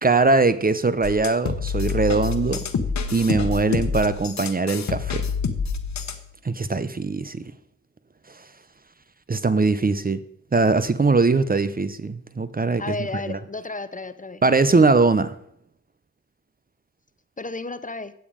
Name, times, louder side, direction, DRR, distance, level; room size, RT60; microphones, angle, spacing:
voice 1, 0.0-2.6 3.1-5.2 6.4-7.5 9.3-10.2 10.5-12.8 13.3-13.4 14.4-15.3, right 3 dB, 30° right, 14 dB, 0.8 m, -21 dB
sound 1, 1.0-6.3, left 5 dB, 60° left, 1.2 m, -27 dB
voice 2, 12.8-14.4 17.4-18.1, left 3 dB, 25° left, 13 dB, 0.8 m, -32 dB
9.5 x 8.3 x 5.1 m, 0.72 s
supercardioid pair, 45°, 32 cm